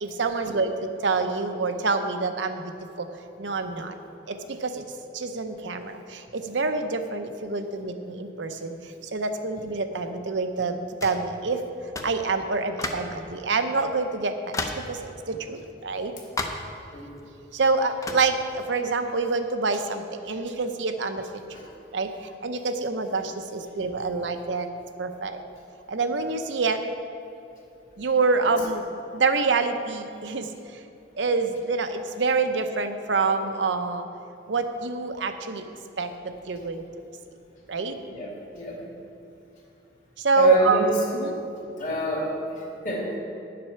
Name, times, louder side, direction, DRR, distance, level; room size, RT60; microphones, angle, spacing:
voice 1, 0.0-2.7 3.0-3.1 3.4-4.0 4.3-4.8 5.1-11.6 12.0-16.1 17.5-21.4 21.9-24.7 25.0-25.4 25.9-26.8 28.0-28.9 29.1-30.8 31.2-34.1 34.5-35.7 36.0-36.8 37.7-38.0 40.2-40.8 41.1-41.5, right 4 dB, 75° right, 7 dB, 0.7 m, -26 dB
sound 1, 11.0-11.3 11.9-12.2 12.8-13.2 13.8-13.9 14.5-14.9 16.4-16.7 18.0-18.3, left 2 dB, 20° left, 0.6 m, -32 dB
voice 2, 38.1-38.8 40.4-40.9 41.7-43.2, equal, 45° left, -3 dB, 2.4 m, -28 dB
10.0 x 7.6 x 5.7 m, 2.7 s
head